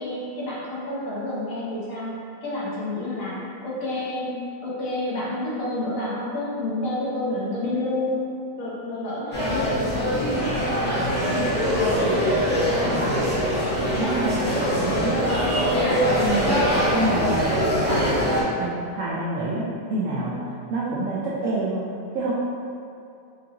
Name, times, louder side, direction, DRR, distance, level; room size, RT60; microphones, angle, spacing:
voice 1, 0.0-2.1 2.4-3.4 3.6-4.4 4.6-8.2 8.6-10.4 10.9-12.2 15.4-16.0, left 1 dB, 60° left, -7 dB, 1.0 m, -29 dB
sound 1, 9.3-18.4, equal, 10° left, 0.5 m, -23 dB
voice 2, 12.8-13.2 13.9-14.5 14.8-15.3 16.2-16.6 16.9-18.1 18.6-20.4 20.7-21.9 22.1-22.3, right 2 dB, 75° right, -6 dB, 0.7 m, -27 dB
4.7 x 2.6 x 2.8 m, 2.5 s
omnidirectional pair, 1.9 m